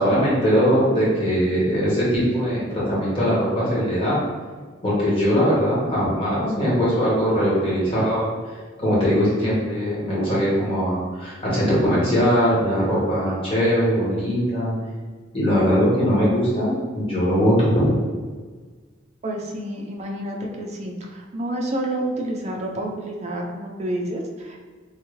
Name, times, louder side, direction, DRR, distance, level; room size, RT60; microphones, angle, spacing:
voice 1, 0.0-4.2 4.8-8.3 8.8-14.7 15.3-18.0, equal, 30° left, -8 dB, 1.3 m, -21 dB
voice 2, 19.2-24.6, right 1 dB, 35° right, 0 dB, 0.5 m, -29 dB
3.5 x 2.4 x 3.1 m, 1.5 s
head